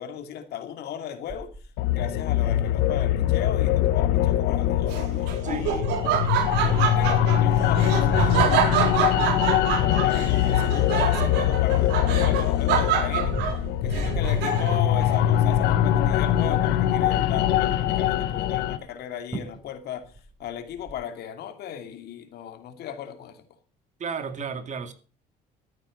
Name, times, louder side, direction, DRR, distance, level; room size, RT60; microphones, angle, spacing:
voice 1, 0.0-1.5 1.9-5.0 5.4-6.1 6.6-23.4, left 9 dB, 70° left, 2.6 m, -36 dB
sound 1, 1.3-2.7 3.3-3.4 3.6-3.9 4.4-4.7 5.5-7.0 7.7-11.6 12.1-15.1 15.6-15.8 16.1-16.2 16.5-17.2 18.9-19.0 19.3-19.7 20.0-20.9, right 2 dB, 25° right, 6.6 m, -35 dB
sound 2, 1.8-18.8, left 11 dB, 85° left, 1.5 m, -23 dB
Laughter, 4.9-14.9, right 9 dB, 90° right, 4.0 m, -27 dB
voice 2, 24.0-24.9, right 6 dB, 45° right, 2.2 m, -33 dB
13.5 x 9.3 x 6.4 m
cardioid pair, 110°, 17 cm